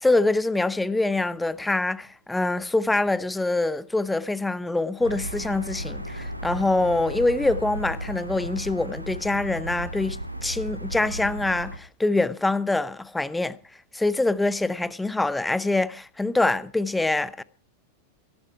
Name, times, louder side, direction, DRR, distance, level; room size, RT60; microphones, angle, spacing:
voice 1, 0.0-13.6 13.9-17.4, left 2 dB, 5° left, 0.8 m, -25 dB
sound 1, 5.0-11.8, equal, 90° right, 1.7 m, -35 dB
17.0 x 14.0 x 4.6 m
figure-of-eight pair, 90°, 0 cm